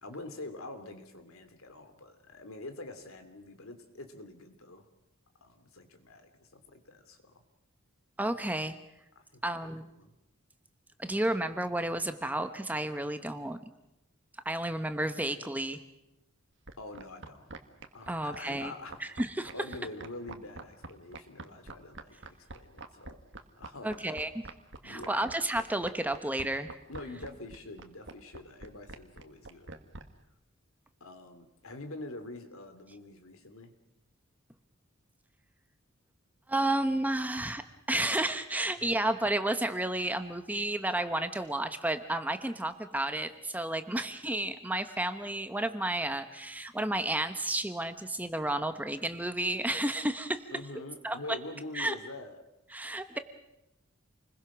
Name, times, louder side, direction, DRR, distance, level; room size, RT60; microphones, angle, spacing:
voice 1, 0.0-4.9 5.4-7.3 9.2-9.5 10.0-10.1 16.8-17.5 17.9-19.0 19.5-22.2 22.5-23.2 23.6-24.0 24.8-25.2 26.9-29.8 31.0-33.7 38.8-38.9 50.5-52.4, left 2 dB, 75° left, 8 dB, 2.9 m, -45 dB
voice 2, 8.2-8.8 9.4-9.8 11.0-13.6 14.4-15.8 18.1-18.7 19.0-19.5 23.8-24.4 24.8-26.7 36.5-37.6 37.9-50.4 51.0-51.2 51.7-51.9 52.7-53.2, right 1 dB, 10° right, 9 dB, 1.0 m, -31 dB
sound 1, 16.7-30.0, right 3 dB, 60° right, 1.7 m, -44 dB
28.5 x 21.0 x 6.2 m, 0.90 s
head